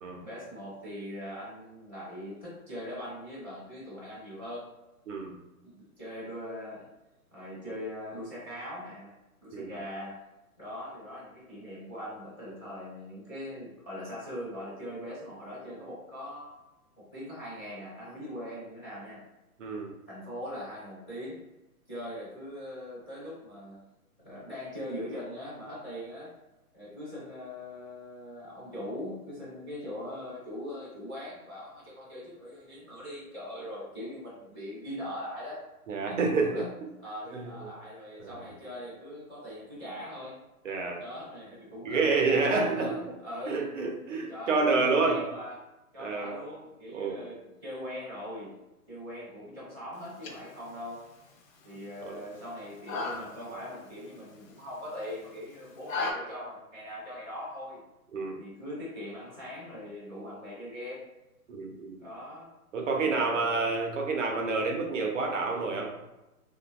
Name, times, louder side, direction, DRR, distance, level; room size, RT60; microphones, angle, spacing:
voice 1, 0.2-4.7 5.6-6.9 7.3-9.1 9.4-10.2 10.6-16.6 17.0-19.2 20.1-21.4 21.9-23.9 24.2-26.3 26.7-35.6 36.4-36.6 37.0-40.4 41.0-43.0 43.2-43.6 44.3-45.5 45.9-48.6 48.9-51.1 51.6-57.8 58.4-61.0 62.0-62.5 63.0-63.6, left 1 dB, 10° left, -14 dB, 0.5 m, -41 dB
voice 2, 5.1-5.4 9.5-9.8 19.6-19.9 35.9-36.7 37.3-37.7 38.2-38.4 40.6-41.0 41.8-43.0 43.5-45.2 46.0-46.4 46.9-47.3 52.0-52.2 58.1-58.4 61.5-62.1 62.7-65.9, right 4 dB, 55° right, 2 dB, 0.5 m, -29 dB
sound 1, 49.9-56.1, left 3 dB, 65° left, 0.6 m, -40 dB
3.0 x 2.1 x 2.3 m, 0.99 s
hypercardioid pair, 145°, 45 cm